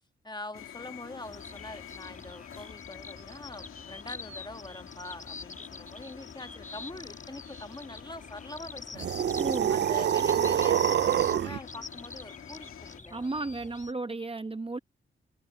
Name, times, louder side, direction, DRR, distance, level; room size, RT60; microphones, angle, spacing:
voice 1, 0.2-9.3 9.7-13.3, left 2 dB, 20° left, 1.7 m, -44 dB
sound 1, 0.5-13.0, left 9 dB, 90° left, 2.2 m, -49 dB
sound 2, 1.2-13.9, left 4 dB, 40° left, 4.0 m, -45 dB
sound 3, 9.0-11.6, right 9 dB, 55° right, 0.4 m, -26 dB
voice 2, 9.4-9.8 13.1-14.8, right 3 dB, 25° right, 1.0 m, -34 dB
cardioid pair, 65°, 21 cm